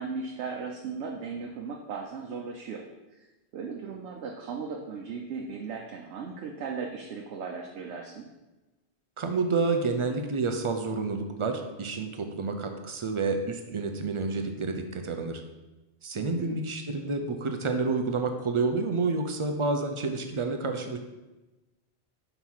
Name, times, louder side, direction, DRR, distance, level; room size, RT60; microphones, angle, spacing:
voice 1, 0.0-2.8 3.2-3.3 3.5-8.3 16.1-16.6, right 5 dB, 90° right, 1 dB, 0.9 m, -37 dB
voice 2, 9.2-15.4 16.0-21.0, right 3 dB, 50° right, 5 dB, 0.4 m, -29 dB
5.6 x 4.0 x 4.5 m, 1.1 s
omnidirectional pair, 1.1 m